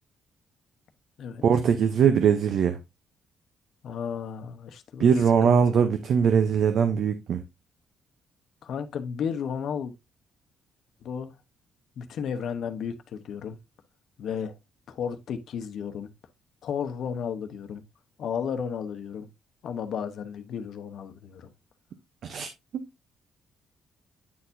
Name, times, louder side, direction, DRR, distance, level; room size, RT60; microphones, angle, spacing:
voice 1, 1.4-2.8 5.0-7.4 22.2-22.8, right 7 dB, 60° right, 0.7 m, -21 dB
voice 2, 3.8-5.1 5.4-5.8 8.6-9.9 11.0-11.3 12.0-13.6 14.2-14.6 14.9-16.1 16.6-17.8 18.2-19.3 19.6-21.5, left 7 dB, 65° left, 0.9 m, -33 dB
9.3 x 4.4 x 2.6 m
cardioid pair, 135°, 0 cm